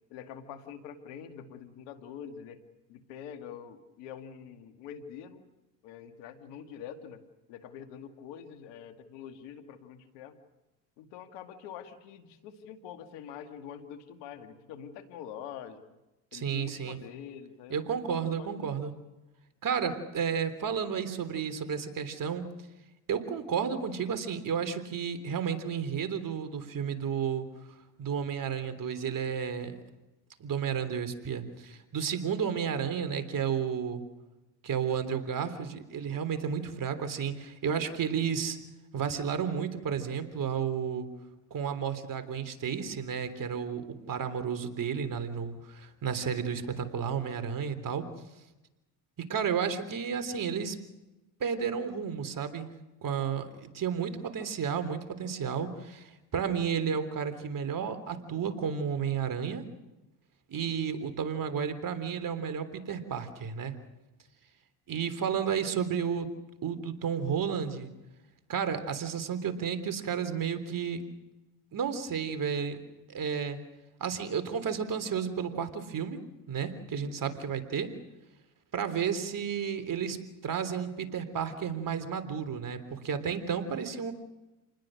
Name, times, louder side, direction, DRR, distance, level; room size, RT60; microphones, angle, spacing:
voice 1, 0.1-2.6 2.9-5.5 5.8-7.2 7.5-10.4 11.0-15.8 16.3-17.9 18.3-18.9, left 8 dB, 85° left, 8 dB, 2.3 m, -45 dB
voice 2, 16.3-17.0 17.7-18.9 19.6-22.5 23.1-27.5 28.0-29.8 30.4-34.0 34.6-38.6 38.9-41.1 41.5-48.1 49.2-50.8 51.4-52.7 53.0-59.6 60.5-63.8 64.9-66.3 66.6-67.9 68.5-71.0 71.7-72.8 73.1-73.6 74.0-76.2 76.5-77.9 78.7-84.1, right 7 dB, 50° right, 10 dB, 3.5 m, -32 dB
28.5 x 20.5 x 6.5 m, 1.0 s
supercardioid pair, 70°, 40 cm